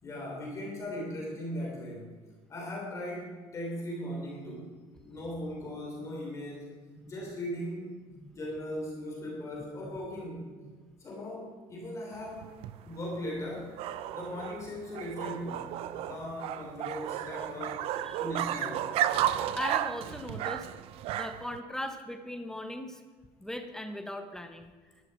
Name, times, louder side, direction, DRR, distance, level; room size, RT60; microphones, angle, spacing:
voice 1, 0.0-2.1 2.5-7.9 8.3-10.5 11.0-12.5 12.8-13.8 14.1-17.9 18.2-18.8, left 1 dB, 30° left, -2 dB, 3.2 m, -38 dB
sound 1, 12.2-21.6, right 12 dB, 70° right, 0.6 m, -33 dB
voice 2, 19.5-20.7 21.1-23.0 23.4-24.7, left 1 dB, 5° left, 6 dB, 0.9 m, -38 dB
14.5 x 11.0 x 4.7 m, 1.5 s
cardioid pair, 145°, 10 cm